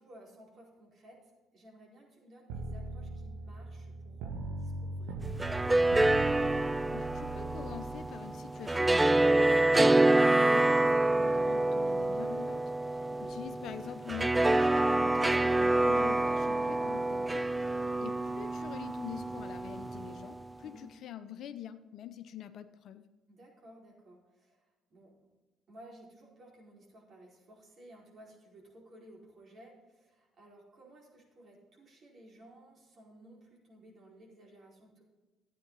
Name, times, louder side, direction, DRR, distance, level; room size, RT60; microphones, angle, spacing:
voice 1, 0.0-6.1 12.8-13.3 20.6-20.9 23.3-25.1 25.7-35.0, right 1 dB, 50° right, -2 dB, 4.6 m, -56 dB
sound 1, 2.5-8.0, right 2 dB, 75° right, 1.2 m, -40 dB
sound 2, 5.2-20.4, right 2 dB, 15° right, 0.3 m, -27 dB
voice 2, 6.9-12.6 13.3-23.0, left 9 dB, 65° left, 11 dB, 0.8 m, -45 dB
13.5 x 9.2 x 4.1 m, 1.2 s
hypercardioid pair, 55°, 0 cm